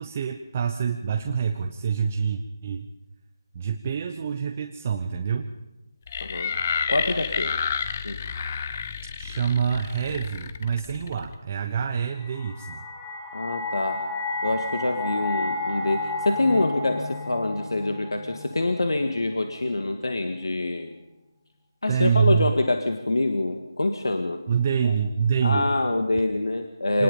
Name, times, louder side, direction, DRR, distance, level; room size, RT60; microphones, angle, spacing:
voice 1, 0.0-2.9 3.5-5.5 9.2-12.8 21.9-22.5 24.5-25.7 26.9-27.0, right 7 dB, 30° right, 4 dB, 0.9 m, -26 dB
sound 1, 6.1-11.3, left 6 dB, 30° left, 0.8 m, -30 dB
voice 2, 6.2-6.5 6.9-7.5 8.0-8.2 13.3-14.0 14.4-21.0 21.8-24.4 24.8-24.9 25.4-27.0, left 2 dB, 85° left, 6 dB, 1.9 m, -25 dB
sound 2, 12.0-19.1, left 2 dB, 10° left, 1.8 m, -32 dB
25.0 x 19.5 x 5.5 m, 1.0 s
figure-of-eight pair, 165°, 2 cm